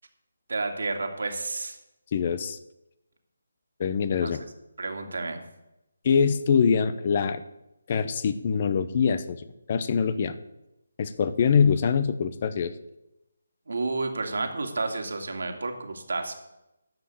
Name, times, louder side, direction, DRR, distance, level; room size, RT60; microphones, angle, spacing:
voice 1, 0.5-1.8 4.2-4.3 4.8-5.4 13.7-16.3, right 3 dB, 70° right, 4 dB, 2.3 m, -30 dB
voice 2, 2.1-2.6 3.8-4.4 6.0-7.4 7.9-10.4 11.0-12.7, left 6 dB, 40° left, 13 dB, 0.8 m, -24 dB
13.0 x 5.6 x 8.8 m, 0.91 s
figure-of-eight pair, 155°, 0 cm